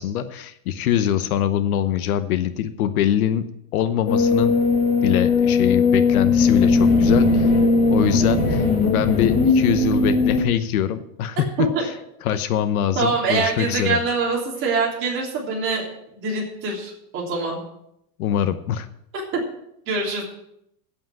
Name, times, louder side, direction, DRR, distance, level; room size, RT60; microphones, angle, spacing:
voice 1, 0.0-4.6 5.0-7.5 7.9-11.4 11.8-11.9 12.2-14.0 18.2-18.9, left 10 dB, 65° left, 11 dB, 1.0 m, -23 dB
sound 1, 4.1-10.4, left 4 dB, 20° left, 1.4 m, -18 dB
voice 2, 11.6-11.9 13.0-15.8 16.1-17.6 19.3-19.4 19.9-20.2, right 4 dB, 25° right, -3 dB, 3.4 m, -24 dB
8.6 x 7.7 x 9.1 m, 0.77 s
supercardioid pair, 180°, 46 cm